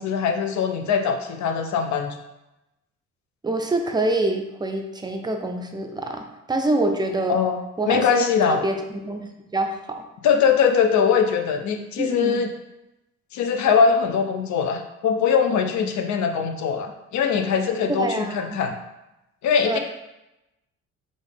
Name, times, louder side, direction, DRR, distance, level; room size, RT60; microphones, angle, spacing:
voice 1, 0.0-2.1 7.3-7.6 7.9-8.6 10.2-12.5 13.3-18.8 19.4-19.8, left 6 dB, 70° left, 6 dB, 0.6 m, -21 dB
voice 2, 3.4-7.4 7.8-10.0 12.0-12.4 17.9-18.6 19.6-19.8, right 2 dB, 15° right, 4 dB, 0.4 m, -26 dB
3.7 x 2.5 x 3.4 m, 0.93 s
cardioid pair, 90°, 30 cm